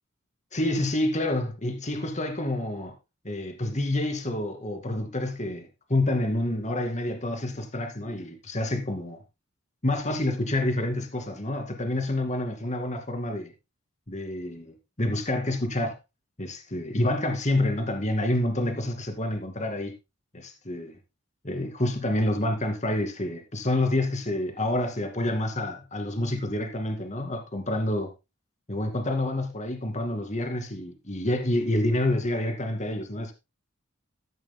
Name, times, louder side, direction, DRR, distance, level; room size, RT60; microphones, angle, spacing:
voice 1, 0.5-2.9 3.2-9.2 9.8-13.5 14.1-16.0 16.4-19.9 20.3-21.0 21.4-28.1 28.7-33.3, left 1 dB, 35° left, 2.3 m, -28 dB
13.5 x 11.0 x 2.2 m
head